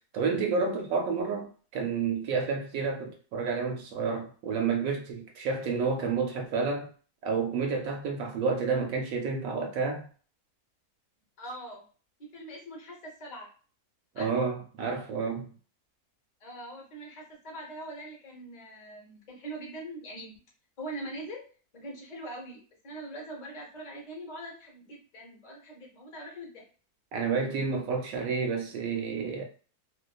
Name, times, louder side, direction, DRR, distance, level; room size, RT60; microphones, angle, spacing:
voice 1, 0.1-6.9 7.2-10.1 14.1-15.5 27.1-29.4, right 5 dB, 70° right, 0.9 m, -30 dB
voice 2, 11.4-11.8 12.2-13.5 14.1-14.5 16.4-20.3 20.8-21.4 21.7-26.7, right 1 dB, 40° left, 0.7 m, -42 dB
2.5 x 2.4 x 2.3 m
omnidirectional pair, 1.6 m